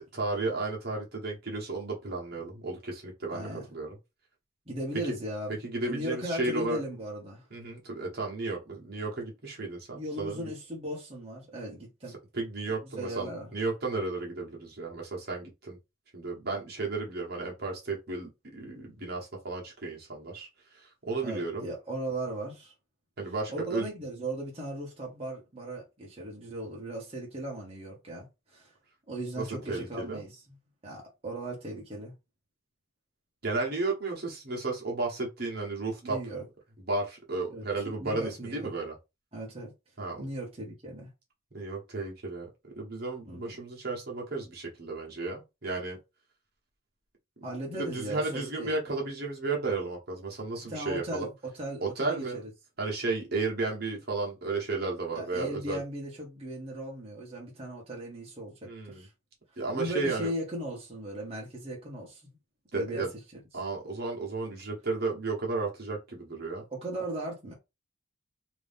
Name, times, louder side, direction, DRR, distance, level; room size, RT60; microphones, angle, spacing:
voice 1, 0.0-3.9 5.6-6.8 7.5-10.5 12.3-15.8 16.1-20.5 21.0-21.7 23.2-23.9 29.4-30.2 33.4-36.2 36.9-38.9 40.0-40.3 41.5-42.5 42.7-46.0 47.8-51.3 51.8-52.4 52.8-55.8 58.6-59.1 59.6-60.3 62.7-63.1 63.5-66.6, right 3 dB, 50° right, 1.2 m, -33 dB
voice 2, 3.3-3.7 4.7-5.5 5.8-7.4 9.9-12.2 12.9-13.5 21.2-22.7 23.5-28.7 29.1-30.6 30.8-32.1 36.0-36.4 37.5-38.7 39.3-39.7 40.2-41.1 43.2-43.4 47.4-48.7 50.7-52.5 55.1-59.1 59.7-62.2 62.7-63.1 66.7-67.5, right 1 dB, 30° right, 1.1 m, -37 dB
3.0 x 2.7 x 3.5 m
head